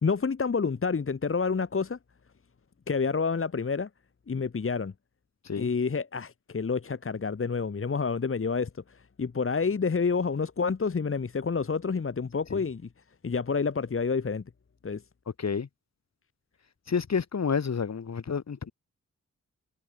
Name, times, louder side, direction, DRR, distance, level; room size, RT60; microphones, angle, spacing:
voice 1, 0.0-2.0 2.9-3.9 4.3-4.9 5.6-12.8 13.2-14.4 14.8-15.0, left 5 dB, 45° left, 1.6 m, -28 dB
voice 2, 16.9-18.7, left 6 dB, 60° left, 2.7 m, -29 dB
cardioid pair, 50°, 31 cm